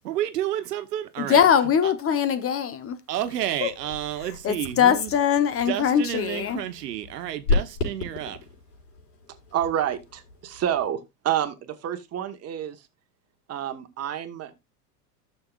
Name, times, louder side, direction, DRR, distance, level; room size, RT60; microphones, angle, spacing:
voice 1, 0.0-1.4 1.8-1.9 3.1-5.1 5.7-8.4, right 12 dB, 85° right, 1.1 m, -30 dB
voice 2, 1.2-3.0 3.6-3.7 4.4-6.6, left 8 dB, 30° left, 1.0 m, -22 dB
sound 1, 3.2-10.9, left 3 dB, 75° left, 5.2 m, -34 dB
voice 3, 9.5-11.0 11.2-12.8 13.5-14.5, right 10 dB, 30° right, 1.3 m, -28 dB
12.5 x 6.9 x 2.4 m
hypercardioid pair, 105°, 47 cm